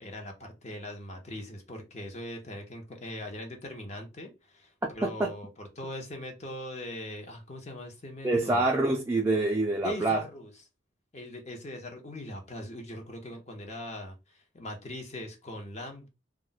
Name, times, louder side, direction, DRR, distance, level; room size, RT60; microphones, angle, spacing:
voice 1, 0.0-8.7 9.8-10.5 11.1-16.1, left 1 dB, 35° left, 0.7 m, -41 dB
voice 2, 5.0-5.3 8.2-10.2, right 2 dB, 15° right, 0.3 m, -26 dB
2.3 x 2.1 x 3.8 m
head